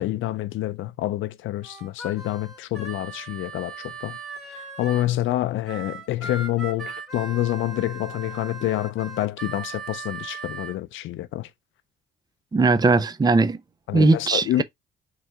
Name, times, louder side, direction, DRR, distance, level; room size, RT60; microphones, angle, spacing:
voice 1, 0.0-4.2 4.5-11.5 13.9-14.6, left 14 dB, 80° left, 0.5 m, -27 dB
Harmonica, 1.6-5.1 5.7-10.8, right 4 dB, ahead, 1.8 m, -38 dB
voice 2, 12.5-13.6 13.9-14.6, right 3 dB, 20° right, 0.5 m, -19 dB
3.7 x 3.2 x 4.4 m
cardioid pair, 90°, 20 cm